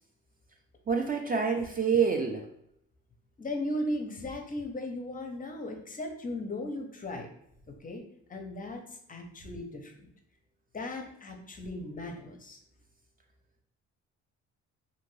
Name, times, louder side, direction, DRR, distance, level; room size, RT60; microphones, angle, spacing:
voice 1, 0.9-2.5, right 6 dB, 30° right, 3 dB, 0.4 m, -27 dB
voice 2, 3.4-7.3 7.8-8.0 8.3-10.1 10.7-12.6, left 1 dB, 30° left, 3 dB, 0.5 m, -37 dB
2.6 x 2.5 x 3.1 m, 0.74 s
cardioid pair, 90°, 30 cm